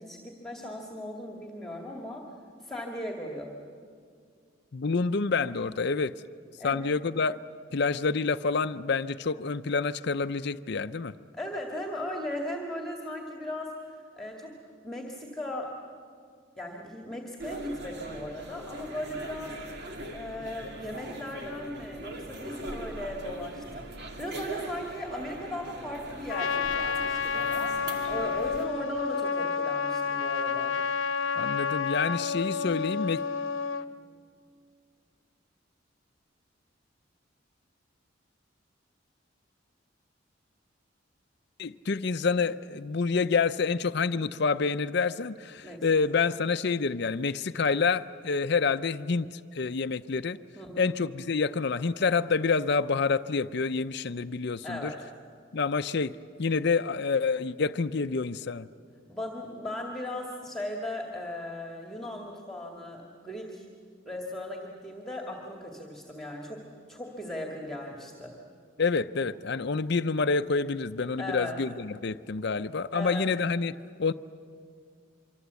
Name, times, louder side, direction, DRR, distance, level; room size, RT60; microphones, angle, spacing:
voice 1, 0.0-3.5 6.6-6.9 11.4-15.8 16.6-19.7 20.1-30.8 45.6-45.9 46.2-46.4 50.6-51.0 54.6-55.0 59.1-63.7 64.1-68.4 71.2-71.6 72.9-73.3, left 1 dB, ahead, 1 dB, 2.1 m, -38 dB
voice 2, 4.7-6.1 6.6-7.4 7.7-11.1 31.4-33.2 41.6-49.3 49.5-50.4 50.8-54.9 55.5-58.7 68.8-73.7 74.0-74.1, left 4 dB, 55° left, 10 dB, 0.6 m, -28 dB
sound 1, 17.4-28.7, right 1 dB, 55° right, 2.6 m, -41 dB
Trumpet, 26.3-33.9, left 5 dB, 85° left, 0.9 m, -30 dB
25.5 x 25.0 x 8.2 m, 2.2 s
head